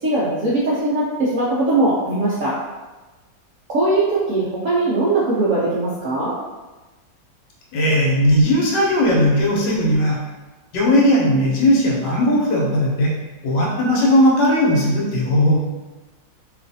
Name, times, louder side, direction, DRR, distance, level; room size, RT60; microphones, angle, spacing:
voice 1, 0.0-2.5 3.7-6.3 14.5-14.6, right 2 dB, 70° right, -9 dB, 0.7 m, -20 dB
voice 2, 7.7-10.2 10.7-13.1 13.4-15.6, equal, 80° left, -4 dB, 1.4 m, -17 dB
3.1 x 2.4 x 2.6 m, 1.2 s
omnidirectional pair, 2.0 m